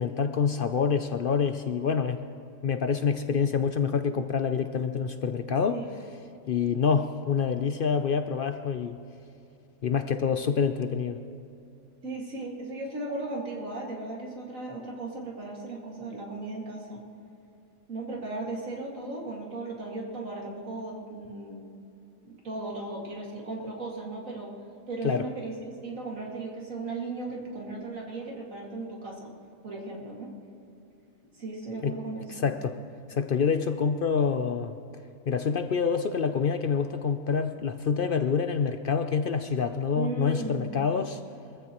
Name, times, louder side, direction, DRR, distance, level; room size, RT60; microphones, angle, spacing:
voice 1, 0.0-2.2 2.6-5.8 6.5-9.0 9.8-11.2 25.0-25.2 31.8-31.9 32.3-32.8 33.1-34.8 35.3-41.2, left 6 dB, 60° left, 8 dB, 0.6 m, -27 dB
voice 2, 12.0-17.0 17.9-21.6 22.2-24.5 24.9-29.3 29.6-30.3 31.3-32.5 40.0-40.8, right 2 dB, 65° right, -2 dB, 2.6 m, -36 dB
24.5 x 14.5 x 3.0 m, 2.7 s
omnidirectional pair, 1.5 m